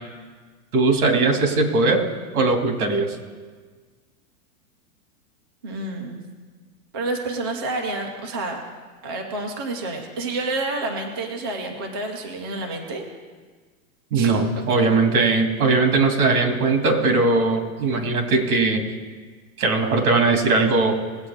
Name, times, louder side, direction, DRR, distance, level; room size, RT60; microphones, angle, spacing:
voice 1, 0.7-2.0 2.3-3.2 14.1-18.8 19.6-21.0, right 3 dB, 75° right, 3 dB, 2.6 m, -19 dB
voice 2, 5.6-6.2 6.9-8.6 9.0-13.0 14.1-14.3 14.6-14.9, right 2 dB, 20° right, 2 dB, 0.3 m, -29 dB
20.0 x 8.6 x 3.6 m, 1.5 s
supercardioid pair, 170°, 43 cm